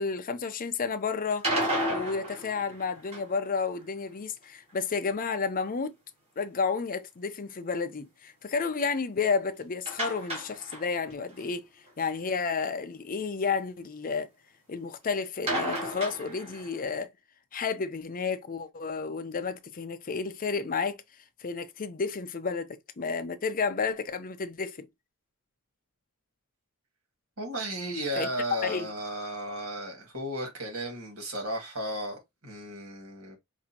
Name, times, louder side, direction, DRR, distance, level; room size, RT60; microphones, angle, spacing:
voice 1, 0.0-1.5 1.9-5.9 6.4-11.6 12.0-14.3 14.7-17.1 17.5-21.0 21.4-24.9 28.2-28.3 28.6-28.9, left 5 dB, 40° left, 0.6 m, -31 dB
sound 1, 1.3-3.5 9.9-11.1 11.4-11.5 11.9-12.0 15.5-16.8, right 1 dB, 30° right, 2.0 m, -32 dB
voice 2, 27.4-33.4, right 1 dB, 70° right, 2.1 m, -34 dB
5.0 x 2.7 x 2.8 m
head